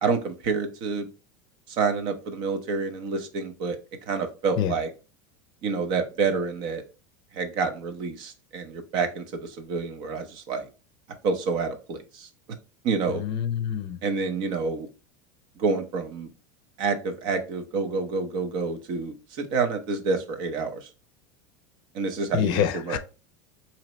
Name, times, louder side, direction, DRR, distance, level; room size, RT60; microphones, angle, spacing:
voice 1, 0.0-1.1 1.7-3.8 4.1-4.9 5.6-6.8 7.3-10.7 11.2-12.3 12.8-13.2 14.0-14.9 15.6-16.3 16.8-20.9 21.9-23.0, right 4 dB, 55° right, 7 dB, 0.8 m, -28 dB
voice 2, 13.1-14.0 22.3-23.0, left 10 dB, 50° left, 11 dB, 0.5 m, -26 dB
4.0 x 2.9 x 3.1 m, 0.33 s
supercardioid pair, 125°, 10 cm